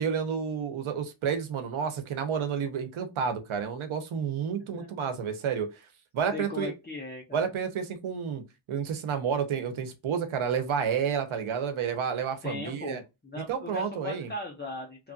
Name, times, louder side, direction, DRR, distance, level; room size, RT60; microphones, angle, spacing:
voice 1, 0.0-5.7 6.1-6.7 7.3-8.4 8.7-13.0 13.4-14.3, right 7 dB, 75° right, 0.9 m, -30 dB
voice 2, 6.3-7.4 12.4-15.1, left 3 dB, 20° left, 0.8 m, -38 dB
3.1 x 2.5 x 2.4 m
cardioid pair, 90°, 49 cm